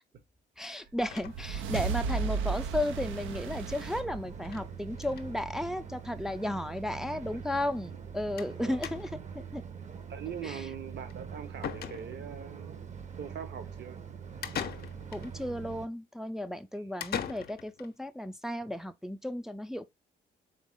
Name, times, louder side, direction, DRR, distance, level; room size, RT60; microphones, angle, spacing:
voice 1, 0.6-9.1 9.5-9.6 10.4-10.7 15.1-19.8, left 1 dB, ahead, 0.4 m, -34 dB
sound 1, 1.0-5.5, right 6 dB, 90° right, 0.6 m, -35 dB
sound 2, 1.1-2.1 2.5-2.6 2.9-3.0 3.2-3.3 4.4-4.7 4.9-5.3 6.2-6.3 6.5-6.6 8.4-8.6 8.8-9.3 11.1-11.2 11.6-12.4 14.4-15.3 17.0-17.9, left 9 dB, 50° left, 0.6 m, -40 dB
sound 3, 2.0-15.9, right 7 dB, 35° right, 0.8 m, -44 dB
voice 2, 10.1-14.0, right 8 dB, 60° right, 1.0 m, -42 dB
4.0 x 3.3 x 3.6 m
cardioid pair, 90°, 20 cm